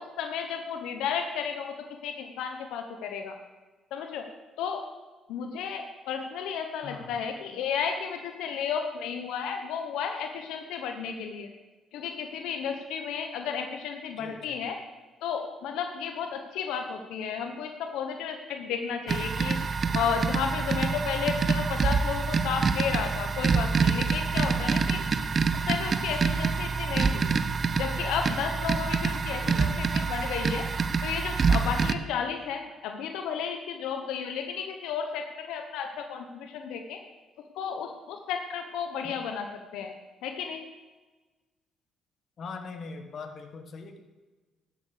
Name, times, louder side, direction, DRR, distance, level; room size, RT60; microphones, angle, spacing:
voice 1, 0.0-1.8 2.0-3.3 3.9-4.3 4.6-4.9 5.3-11.5 11.9-14.8 15.2-19.6 19.9-25.0 25.5-27.3 27.8-30.6 31.0-37.0 37.5-39.5 39.7-39.9 40.2-40.6, left 7 dB, 90° left, 5 dB, 1.0 m, -33 dB
voice 2, 6.8-7.2 14.2-14.6 29.4-29.8 39.0-39.2 42.4-44.0, left 4 dB, 55° left, 5 dB, 1.6 m, -41 dB
sound 1, 19.1-31.9, right 5 dB, 40° right, 0.7 m, -26 dB
11.5 x 7.8 x 6.7 m, 1.2 s
cardioid pair, 95°, 0 cm